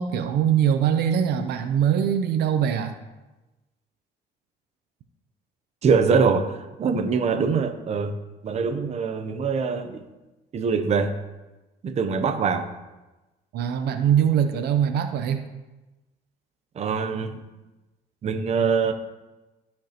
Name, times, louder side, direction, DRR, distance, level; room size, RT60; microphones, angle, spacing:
voice 1, 0.0-2.9 13.5-15.5, right 8 dB, 75° right, 8 dB, 0.7 m, -22 dB
voice 2, 5.8-8.1 8.4-10.0 10.5-11.2 11.8-12.7 16.8-17.4 18.2-18.9, right 5 dB, 40° right, 7 dB, 0.7 m, -23 dB
13.5 x 5.3 x 3.0 m, 1.1 s
cardioid pair, 110°, 17 cm